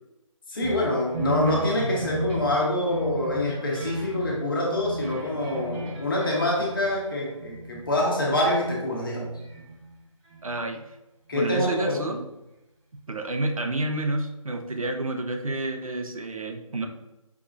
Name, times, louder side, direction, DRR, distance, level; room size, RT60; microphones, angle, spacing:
voice 1, 0.5-9.3 11.3-12.0, left 1 dB, 40° left, -3 dB, 1.3 m, -26 dB
sound 1, 0.6-7.9 8.3-9.9 10.2-10.7 11.6-11.7, right 1 dB, 5° right, 0.6 m, -35 dB
voice 2, 10.4-10.8 11.3-12.2 13.1-16.9, right 2 dB, 80° right, 4 dB, 0.8 m, -29 dB
5.9 x 3.0 x 2.5 m, 0.97 s
figure-of-eight pair, 155°, 18 cm